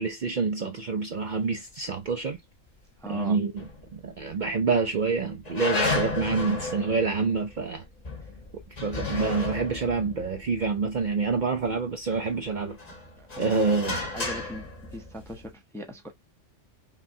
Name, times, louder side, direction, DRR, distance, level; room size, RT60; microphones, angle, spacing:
voice 1, 0.0-2.4 3.1-3.5 3.9-7.8 8.8-12.8 13.4-14.0, right 4 dB, 55° right, 0.6 m, -27 dB
voice 2, 3.0-3.4 13.2-13.8 14.1-16.1, equal, 5° left, 0.5 m, -40 dB
sound 1, 3.6-4.3 4.7-4.8 5.5-11.6 12.1-15.5, left 3 dB, 35° left, 1.0 m, -33 dB
5.7 x 2.3 x 2.6 m
omnidirectional pair, 1.2 m